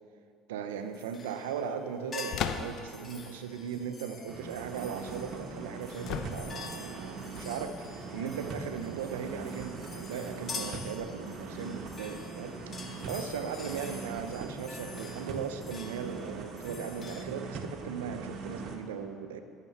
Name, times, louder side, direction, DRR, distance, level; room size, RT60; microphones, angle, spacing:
voice 1, 0.5-12.6 12.9-19.4, right 7 dB, 85° right, 8 dB, 0.7 m, -38 dB
sound 1, 0.9-1.7 2.1-17.2, left 4 dB, 35° left, 1.4 m, -47 dB
sound 2, 2.3-3.0 6.1-6.8, left 8 dB, 60° left, 0.7 m, -35 dB
sound 3, 4.3-18.8, right 3 dB, 55° right, 1.4 m, -41 dB
12.0 x 6.8 x 7.0 m, 2.3 s
hypercardioid pair, 70°, 0 cm